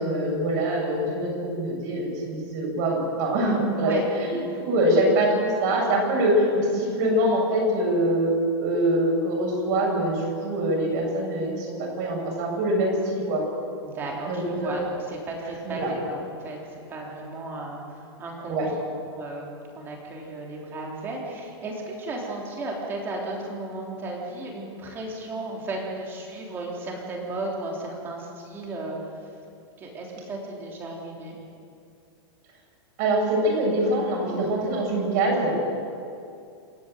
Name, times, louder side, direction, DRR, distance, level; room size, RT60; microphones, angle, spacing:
voice 1, 0.0-4.4 4.7-8.3 8.6-13.4 14.3-14.7 15.6-15.9 18.5-18.7 33.0-35.6, right 1 dB, 40° right, -2 dB, 6.9 m, -24 dB
voice 2, 13.8-16.6 16.9-18.6 19.1-19.5 19.7-29.0 29.2-29.3 29.8-31.4, right 2 dB, 15° right, -1 dB, 3.4 m, -34 dB
27.5 x 10.5 x 9.1 m, 2.5 s
supercardioid pair, 175°, 14 cm